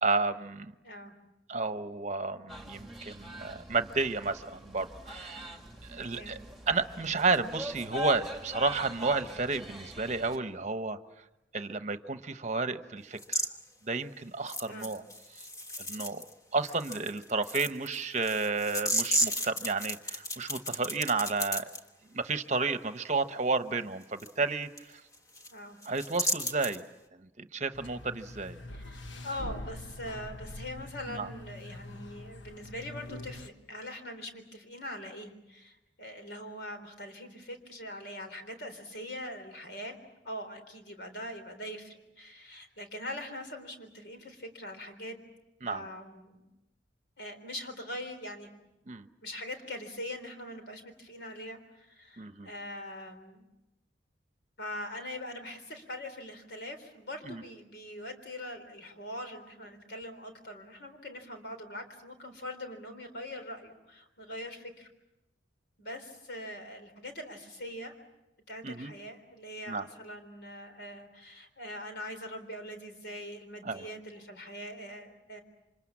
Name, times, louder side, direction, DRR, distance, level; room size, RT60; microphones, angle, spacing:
voice 1, 0.0-0.7 1.5-5.6 5.9-6.4 6.7-11.0 11.5-13.4 13.9-15.0 15.8-16.3 16.5-21.6 22.1-24.7 25.9-26.8 27.2-28.6 31.1-31.3 45.6-45.8 48.9-49.1 52.2-52.5 57.3-57.4 68.6-68.9 69.7-69.9 73.6-73.8, right 3 dB, 40° right, 10 dB, 1.0 m, -31 dB
voice 2, 0.8-1.1 6.1-6.4 14.7-14.9 25.5-25.8 28.7-40.0 40.2-45.2 45.7-46.4 47.2-48.5 49.2-53.4 54.6-64.9 65.8-68.0 68.5-75.4, left 1 dB, 60° left, 6 dB, 3.8 m, -42 dB
sound 1, 2.5-10.4, left 1 dB, ahead, 2.2 m, -43 dB
sound 2, 13.2-13.5 14.5-16.3 16.6-21.8 24.2-24.3 24.8-24.9 25.1-25.5 25.8-26.8, equal, 20° left, 1.2 m, -33 dB
sound 3, 27.7-33.5, left 1 dB, 85° left, 1.2 m, -44 dB
28.5 x 25.5 x 7.4 m, 0.96 s
head